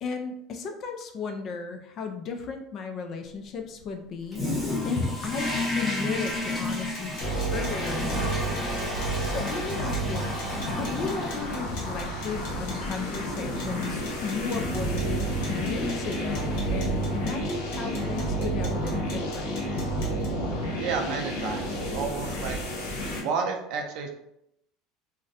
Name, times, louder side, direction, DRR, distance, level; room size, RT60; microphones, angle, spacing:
voice 1, 0.0-4.4 4.8-7.2 7.5-8.5 9.3-10.3 10.7-19.6, left 5 dB, 35° left, 5 dB, 0.4 m, -35 dB
Toilet flush, 4.3-16.6, left 2 dB, 10° left, 0.8 m, -34 dB
sound 1, 6.3-20.3, left 1 dB, 60° left, 1.1 m, -45 dB
sound 2, 7.2-23.2, right 1 dB, 80° left, 1.0 m, -30 dB
voice 2, 20.8-22.6 23.2-24.1, right 5 dB, 55° right, 3 dB, 0.5 m, -31 dB
2.6 x 2.1 x 3.9 m, 0.79 s
cardioid pair, 160°, 0 cm